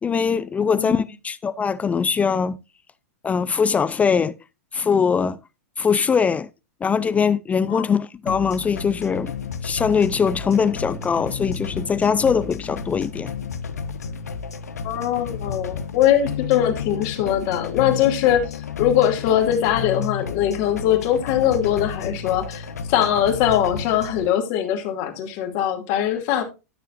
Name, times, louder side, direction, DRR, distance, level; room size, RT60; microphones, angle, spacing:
voice 1, 0.0-2.6 3.2-4.4 4.7-5.4 5.8-6.5 6.8-9.3 9.6-13.3, left 6 dB, 15° left, 0.4 m, -21 dB
voice 2, 0.7-1.0 7.7-7.9 14.8-26.4, left 10 dB, 50° left, 2.4 m, -21 dB
sound 1, 8.3-24.3, left 6 dB, 80° left, 1.0 m, -32 dB
13.0 x 6.5 x 2.5 m
hypercardioid pair, 105°, 8 cm